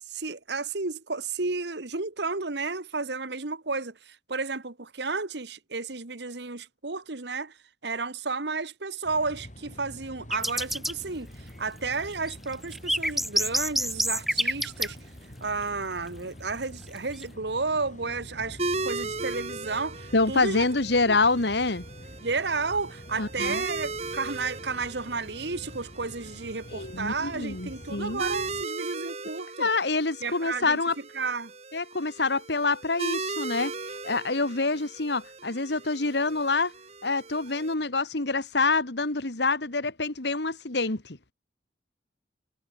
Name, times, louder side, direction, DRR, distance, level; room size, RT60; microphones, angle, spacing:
voice 1, 0.1-7.5 7.8-11.3 11.6-15.0 15.4-20.7 21.1-21.2 22.2-29.7 30.2-30.8 31.1-31.5, right 4 dB, 70° right, 1.6 m, -32 dB
sound 1, 9.0-28.7, equal, 40° left, 3.9 m, -46 dB
sound 2, 10.3-10.9 12.1-14.9 17.0-17.2, equal, ahead, 2.0 m, -27 dB
sound 3, 18.6-37.7, right 3 dB, 35° right, 2.4 m, -37 dB
voice 2, 20.1-21.8 23.2-23.6 26.7-28.2 29.6-31.0 31.7-36.7 37.0-41.2, left 3 dB, 70° left, 1.9 m, -26 dB
head